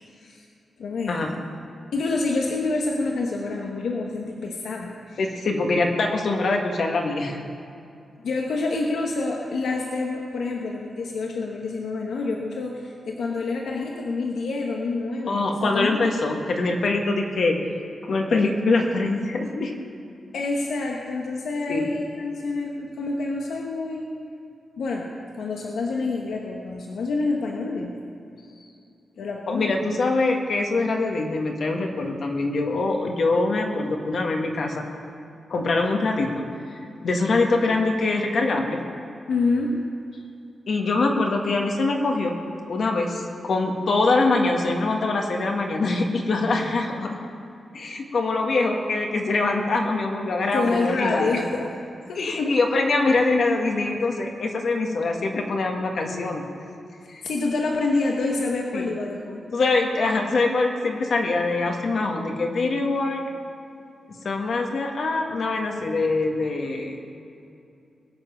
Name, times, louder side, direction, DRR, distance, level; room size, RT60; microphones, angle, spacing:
voice 1, 0.8-1.3 1.9-5.2 8.2-16.0 20.3-24.1 24.8-25.1 25.3-28.0 28.4-28.7 29.2-29.8 39.3-39.7 50.5-51.6 52.1-52.6 57.2-59.4, left 3 dB, 90° left, 0 dB, 1.2 m, -27 dB
voice 2, 5.2-7.4 15.3-17.6 18.0-19.7 21.7-21.9 29.5-34.8 35.5-36.4 37.0-38.8 40.7-42.4 42.7-47.1 47.7-51.4 52.1-56.5 57.1-57.2 58.7-58.9 59.5-63.2 64.2-67.1, left 3 dB, 55° left, 2 dB, 1.5 m, -24 dB
21.0 x 7.2 x 6.0 m, 2.6 s
wide cardioid pair, 155°, 0 cm